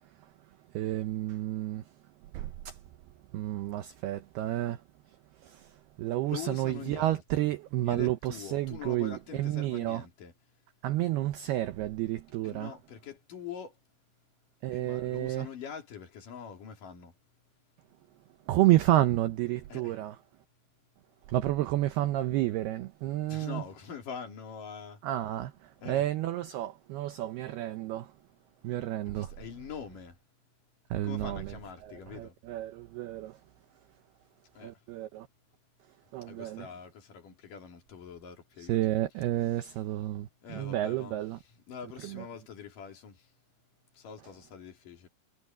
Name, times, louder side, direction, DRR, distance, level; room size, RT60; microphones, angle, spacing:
voice 1, 0.7-1.8 2.3-2.8 3.3-4.8 5.4-5.7 6.0-10.0 10.8-12.7 14.6-15.5 18.5-20.1 21.3-23.6 25.0-28.1 28.6-29.3 30.9-31.5 31.8-33.4 34.6-35.3 36.1-36.7 38.6-41.4 42.0-42.2, right 15 dB, 85° right, 2.3 m, -30 dB
voice 2, 6.3-7.5 7.8-10.3 12.4-13.8 14.7-17.1 19.7-20.0 23.3-25.0 25.8-26.0 29.1-30.2 31.0-32.4 34.5-34.8 36.2-38.8 40.4-41.2 41.7-43.3 43.9-45.1, left 7 dB, 50° left, 3.9 m, -44 dB
omnidirectional pair, 5.7 m